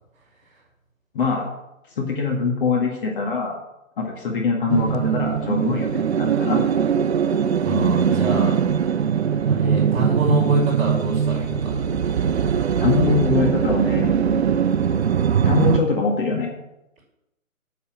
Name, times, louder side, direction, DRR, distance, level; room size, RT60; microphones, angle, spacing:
voice 1, 1.1-1.5 2.0-3.6 4.0-6.6 12.8-14.4 15.4-16.5, left 4 dB, 40° left, 0 dB, 1.8 m, -23 dB
sound 1, 4.7-15.8, right 7 dB, 50° right, 0.7 m, -21 dB
voice 2, 7.6-8.6 9.5-11.9, right 1 dB, 15° right, -6 dB, 5.0 m, -25 dB
9.1 x 7.1 x 7.5 m, 0.92 s
hypercardioid pair, 150°, 41 cm